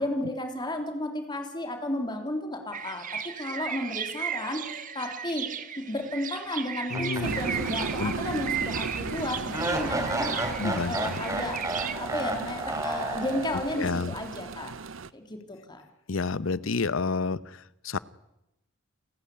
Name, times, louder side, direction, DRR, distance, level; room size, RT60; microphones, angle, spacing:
voice 1, 0.0-5.5 5.8-14.7 15.1-15.8, left 1 dB, 20° left, 4 dB, 3.2 m, -33 dB
sound 1, 2.7-11.9, right 8 dB, 40° right, 1.5 m, -36 dB
voice 2, 6.9-7.4 8.0-8.1 10.6-11.2 13.8-14.1 16.1-18.0, left 4 dB, 80° left, 19 dB, 0.8 m, -29 dB
sound 2, 6.9-8.2 8.6-8.7 9.5-13.8, right 2 dB, 15° right, 3.0 m, -32 dB
sound 3, 7.2-15.1, right 4 dB, 75° right, 0.8 m, -36 dB
29.5 x 14.0 x 10.0 m, 0.92 s
head